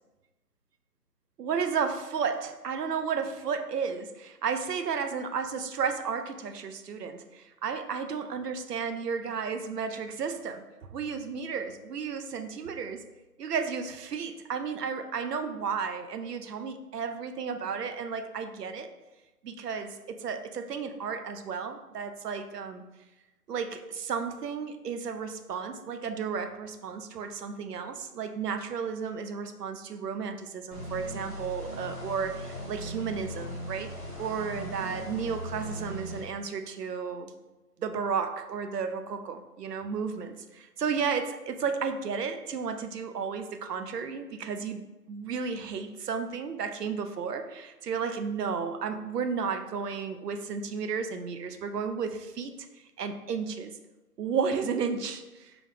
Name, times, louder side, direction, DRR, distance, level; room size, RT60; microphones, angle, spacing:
voice 1, 1.4-13.0 13.4-18.9 19.4-22.8 23.5-33.9 34.2-37.3 37.8-44.8 45.1-52.5 53.0-53.7 54.2-55.5, right 6 dB, 80° right, 7 dB, 0.6 m, -33 dB
sound 1, 30.7-36.2, equal, 10° left, 0.6 m, -39 dB
3.8 x 3.0 x 3.4 m, 1.1 s
figure-of-eight pair, 150°, 47 cm